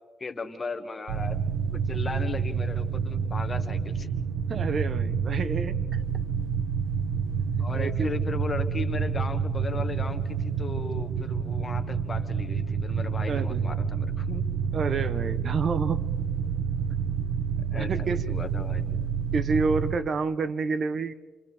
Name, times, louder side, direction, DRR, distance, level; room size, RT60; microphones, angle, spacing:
voice 1, 0.2-1.4 1.7-4.1 7.6-14.7 17.7-18.9, left 4 dB, 30° left, 6 dB, 1.8 m, -37 dB
sound 1, 1.1-19.9, right 6 dB, 85° right, 1.0 m, -28 dB
voice 2, 4.5-6.0 7.6-8.1 13.3-13.8 14.7-16.0 17.7-18.2 19.3-21.1, right 4 dB, 50° right, 13 dB, 0.9 m, -29 dB
29.0 x 28.0 x 3.5 m, 1.5 s
cardioid pair, 90°, 0 cm